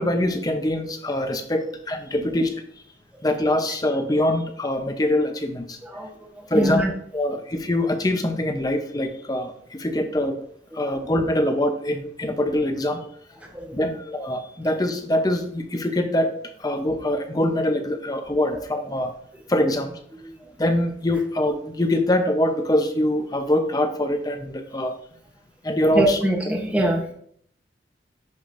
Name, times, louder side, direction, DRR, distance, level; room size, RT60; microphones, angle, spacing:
voice 1, 0.0-2.5 3.2-5.8 6.5-6.8 7.1-10.4 10.7-13.0 13.7-16.3 16.6-19.1 19.5-20.0 20.6-24.9 25.6-26.2, left 1 dB, 20° left, 6 dB, 0.7 m, -23 dB
voice 2, 5.8-6.9 10.7-10.8 13.4-13.8 20.4-20.5 25.9-27.1, right 1 dB, 5° right, 0 dB, 0.9 m, -24 dB
10.5 x 5.0 x 2.6 m, 0.63 s
head